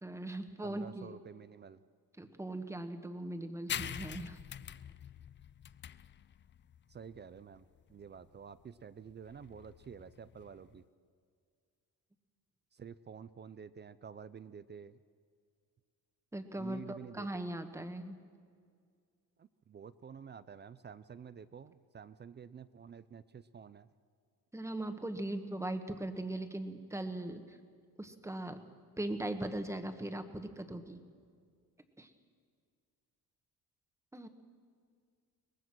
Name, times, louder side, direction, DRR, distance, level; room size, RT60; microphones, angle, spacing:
voice 1, 0.0-1.2 2.2-4.4 16.3-18.2 24.5-27.6 28.0-28.6 29.0-31.0 32.0-32.1 34.1-34.3, right 1 dB, 10° right, 7 dB, 1.4 m, -39 dB
voice 2, 0.6-1.8 6.9-7.6 7.9-10.8 12.7-15.0 16.6-17.5 19.4-23.9, right 7 dB, 30° right, 14 dB, 0.5 m, -50 dB
sound 1, 3.7-10.8, left 9 dB, 30° left, 0.4 m, -45 dB
23.0 x 20.0 x 6.2 m, 2.1 s
cardioid pair, 120°, 37 cm